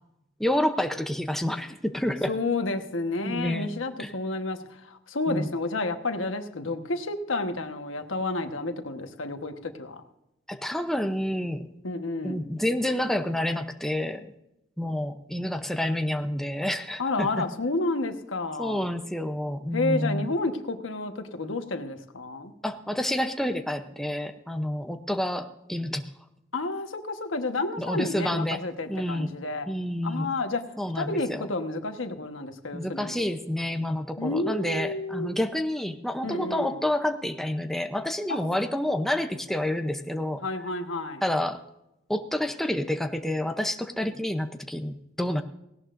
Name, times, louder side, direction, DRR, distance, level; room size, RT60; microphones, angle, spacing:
voice 1, 0.4-2.3 3.2-3.7 4.0-4.1 5.3-5.5 10.5-11.7 12.2-14.3 14.8-17.0 18.6-20.3 22.6-26.0 27.8-28.6 28.9-29.3 29.7-30.3 30.8-31.5 32.7-40.4 41.2-41.6 42.1-45.4, left 1 dB, ahead, 6 dB, 0.7 m, -29 dB
voice 2, 2.3-10.0 11.8-12.4 17.0-18.9 19.7-22.5 26.5-29.7 30.0-30.6 30.9-33.3 34.2-35.3 36.2-36.8 38.3-38.4 40.4-41.2, left 2 dB, 90° left, 6 dB, 1.3 m, -30 dB
18.0 x 17.0 x 2.6 m, 0.85 s
head